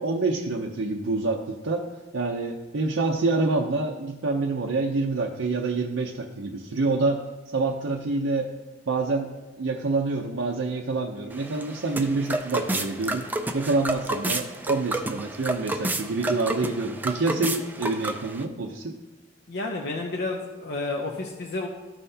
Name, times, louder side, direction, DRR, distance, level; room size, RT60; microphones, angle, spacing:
voice 1, 0.0-1.9 2.1-8.5 8.9-9.3 9.6-13.3 13.5-19.0, right 3 dB, 75° right, 0 dB, 0.6 m, -27 dB
sound 1, 11.3-18.4, right 2 dB, 10° right, 0.4 m, -30 dB
voice 2, 19.5-21.7, left 2 dB, 60° left, 1 dB, 0.7 m, -30 dB
13.5 x 5.6 x 2.7 m, 1.2 s
head